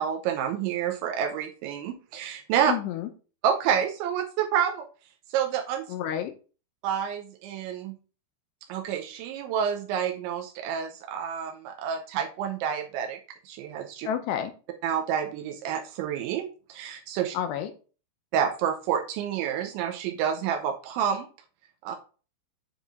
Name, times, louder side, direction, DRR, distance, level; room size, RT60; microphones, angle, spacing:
voice 1, 0.0-2.7 3.4-4.9 5.3-5.9 6.8-7.9 8.7-13.2 13.5-14.1 14.8-17.4 18.3-21.3 21.8-22.0, right 8 dB, 80° right, 4 dB, 3.0 m, -28 dB
voice 2, 2.7-3.1 5.9-6.3 14.0-14.5 17.3-17.7, left 10 dB, 80° left, 8 dB, 2.6 m, -29 dB
9.8 x 3.7 x 3.5 m, 0.37 s
omnidirectional pair, 5.3 m